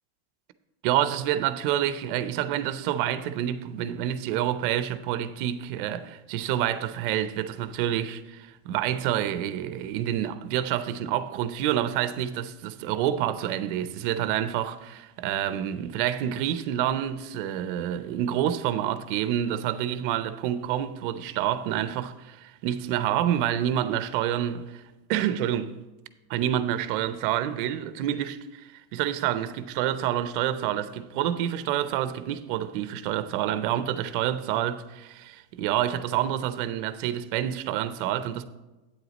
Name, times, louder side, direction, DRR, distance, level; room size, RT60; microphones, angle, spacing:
voice 1, 0.8-24.8 25.1-25.8 26.3-38.4, right 11 dB, 50° right, 0.5 m, -28 dB
8.7 x 7.9 x 4.0 m
supercardioid pair, 180°, 35 cm